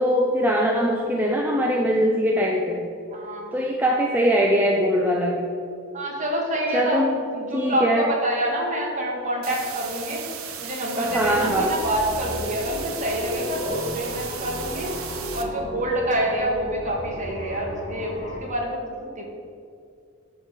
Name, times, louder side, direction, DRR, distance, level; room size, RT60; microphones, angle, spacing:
voice 1, 0.0-2.8 3.5-5.5 6.7-7.2 7.5-8.1 11.0-11.7, equal, 10° right, -1 dB, 0.5 m, -22 dB
voice 2, 3.1-3.8 5.9-7.0 7.3-10.2 10.6-14.9 15.3-19.2, right 1 dB, 35° right, -1 dB, 1.6 m, -27 dB
sound 1, 9.4-15.4, right 8 dB, 75° right, 0.8 m, -36 dB
sound 2, 11.0-18.4, left 1 dB, 35° left, 1.3 m, -35 dB
10.5 x 3.8 x 6.5 m, 2.4 s
head